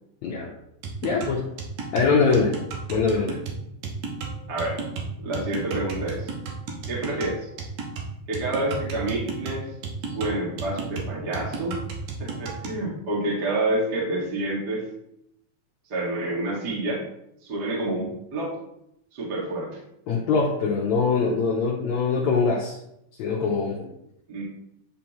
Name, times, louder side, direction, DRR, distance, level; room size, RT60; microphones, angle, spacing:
sound 1, 0.8-12.8, right 4 dB, 70° right, 2.4 m, -34 dB
voice 1, 1.0-1.5 1.9-2.6 2.9-3.4 20.1-22.8 23.2-23.9, left 4 dB, 70° left, -2 dB, 1.9 m, -23 dB
voice 2, 4.5-4.8 5.2-6.3 6.9-7.5 8.3-9.7 10.0-11.8 12.2-14.8 15.9-17.0 17.4-18.6 19.1-19.8 24.3-24.4, right 2 dB, 35° right, -5 dB, 2.0 m, -28 dB
10.5 x 5.1 x 3.1 m, 0.79 s
omnidirectional pair, 4.0 m